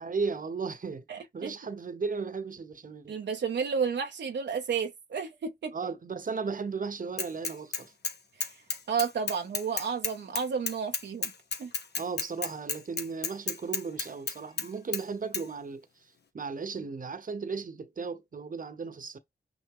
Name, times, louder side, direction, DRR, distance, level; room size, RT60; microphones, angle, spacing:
voice 1, 0.0-1.0 1.3-3.2 5.7-7.9 12.0-15.9 16.3-19.2, right 5 dB, 50° right, 0.9 m, -35 dB
voice 2, 1.1-1.5 3.1-5.7 8.9-11.3 11.6-11.7, right 6 dB, 85° right, 0.8 m, -31 dB
Bicycle / Mechanisms, 7.2-8.1 8.4-14.7 14.9-15.0 15.3-15.4, left 5 dB, 70° left, 1.0 m, -32 dB
6.1 x 2.0 x 3.7 m
cardioid pair, 60°, 18 cm